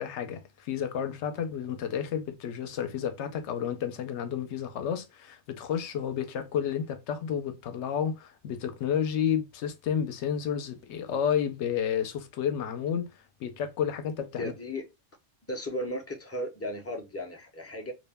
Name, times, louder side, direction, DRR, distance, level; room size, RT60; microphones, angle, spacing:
voice 1, 0.0-13.1 13.4-14.5, left 8 dB, 80° left, 0.9 m, -31 dB
voice 2, 14.4-14.8 15.5-17.9, left 1 dB, 20° left, 0.4 m, -35 dB
2.4 x 2.1 x 3.2 m
omnidirectional pair, 1.2 m